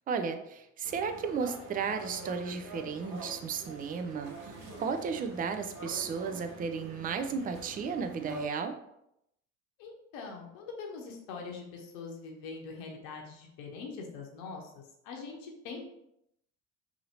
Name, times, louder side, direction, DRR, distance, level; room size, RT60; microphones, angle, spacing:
voice 1, 0.1-8.8, right 5 dB, 25° right, 8 dB, 0.4 m, -34 dB
sound 1, 0.8-8.5, right 1 dB, 65° right, 1.2 m, -46 dB
voice 2, 9.8-15.8, left 4 dB, 70° left, 0 dB, 0.9 m, -43 dB
2.8 x 2.8 x 4.1 m, 0.79 s
hypercardioid pair, 65°, 38 cm